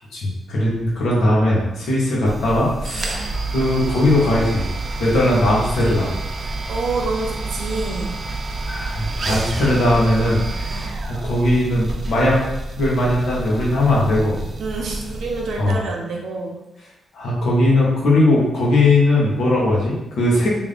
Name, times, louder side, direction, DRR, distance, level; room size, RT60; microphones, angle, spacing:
voice 1, 0.1-4.7 5.0-6.1 8.6-10.9 11.2-12.4 12.8-14.4 15.6-15.8 17.1-20.5, left 1 dB, 75° left, -5 dB, 1.3 m, -19 dB
sound 1, 2.3-15.8, right 2 dB, 35° right, 0.4 m, -28 dB
voice 2, 2.9-3.2 5.0-5.1 6.4-8.2 10.7-10.9 14.6-16.5, right 3 dB, 70° right, -1 dB, 0.7 m, -28 dB
3.4 x 2.7 x 3.5 m, 0.93 s
wide cardioid pair, 160°, 0 cm